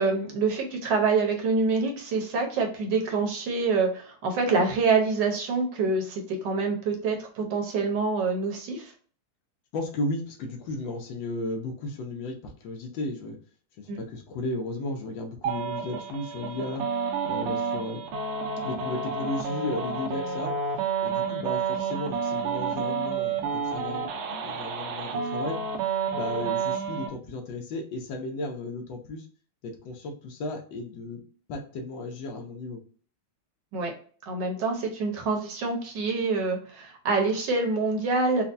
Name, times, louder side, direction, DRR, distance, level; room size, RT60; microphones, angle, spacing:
voice 1, 0.0-8.9 13.9-14.0 33.7-33.9 34.3-38.4, right 4 dB, 65° right, 2 dB, 1.4 m, -26 dB
voice 2, 9.7-13.4 13.8-16.8 17.3-18.0 18.6-20.5 21.0-25.6 26.1-29.3 29.6-31.2 31.5-32.8, left 2 dB, 70° left, 2 dB, 1.5 m, -34 dB
sound 1, 15.4-27.1, right 5 dB, 85° right, 1.5 m, -30 dB
4.4 x 2.2 x 2.6 m, 0.44 s
omnidirectional pair, 2.3 m